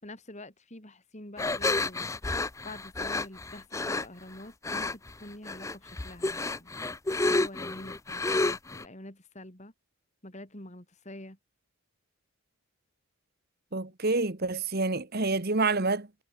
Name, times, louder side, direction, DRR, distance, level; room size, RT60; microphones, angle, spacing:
voice 1, 0.0-6.7 7.3-9.7 10.2-11.4, left 1 dB, 30° left, 3.6 m, -47 dB
sound 1, 1.4-4.0 4.6-5.1 5.4-8.8, left 2 dB, 15° left, 0.5 m, -30 dB
voice 2, 13.7-16.2, right 3 dB, 45° right, 1.4 m, -28 dB
head